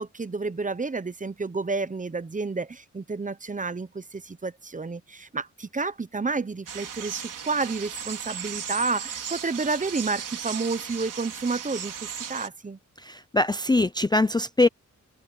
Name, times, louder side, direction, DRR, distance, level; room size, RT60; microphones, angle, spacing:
voice 1, 0.0-12.8, right 4 dB, 25° right, 0.9 m, -30 dB
sound 1, 6.7-12.5, right 7 dB, 90° right, 4.5 m, -36 dB
voice 2, 13.0-14.7, left 2 dB, 15° left, 0.5 m, -22 dB
wide cardioid pair, 105°, 31 cm